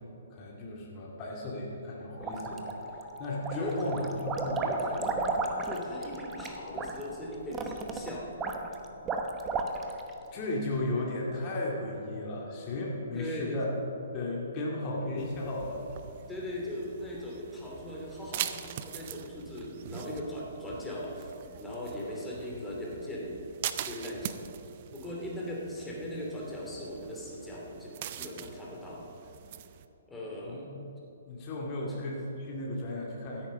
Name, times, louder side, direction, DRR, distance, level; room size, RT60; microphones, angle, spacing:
voice 1, 0.0-4.6 10.3-13.7 14.1-15.8 30.5-30.8 31.3-33.5, left 2 dB, 30° left, -3 dB, 2.2 m, -35 dB
sound 1, 2.0-7.0, left 1 dB, 75° left, 2.1 m, -45 dB
sound 2, 2.2-3.0 3.4-10.1, right 3 dB, 15° right, 1.0 m, -33 dB
voice 2, 3.5-4.1 4.6-5.3 5.6-8.3 13.1-13.6 16.3-23.4 23.8-24.4 24.9-29.0 30.1-30.7 31.9-32.0, left 1 dB, 10° left, -4 dB, 2.6 m, -39 dB
sound 3, 15.2-29.9, right 10 dB, 45° right, 0.6 m, -43 dB
15.0 x 8.7 x 5.3 m, 3.0 s
figure-of-eight pair, 125°, 0 cm